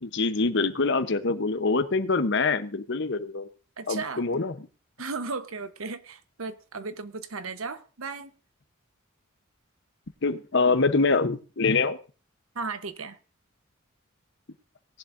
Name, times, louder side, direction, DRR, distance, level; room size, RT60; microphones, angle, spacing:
voice 1, 0.0-3.5 3.9-4.5 10.2-12.0, left 3 dB, 60° left, 1.0 m, -25 dB
voice 2, 3.8-4.2 5.0-8.3 12.5-13.2, right 4 dB, 90° right, 1.1 m, -35 dB
18.5 x 11.0 x 2.7 m
head